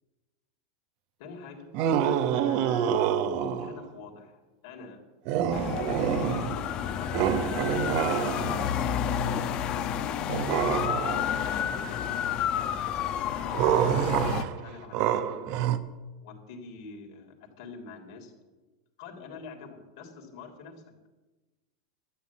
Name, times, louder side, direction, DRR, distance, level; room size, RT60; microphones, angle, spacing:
voice 1, 1.2-1.7 2.3-3.0 3.3-5.0 5.7-10.1 10.9-15.4 16.2-18.3 19.0-20.7, left 4 dB, 70° left, 3 dB, 3.4 m, -46 dB
sound 1, 1.7-3.8 5.2-6.7 7.1-8.8 10.3-11.4 13.5-15.8, right 9 dB, 55° right, 0.9 m, -27 dB
sound 2, 5.5-14.4, left 9 dB, 40° left, 1.0 m, -30 dB
13.0 x 8.2 x 8.4 m, 1.2 s
hypercardioid pair, 120°, 2 cm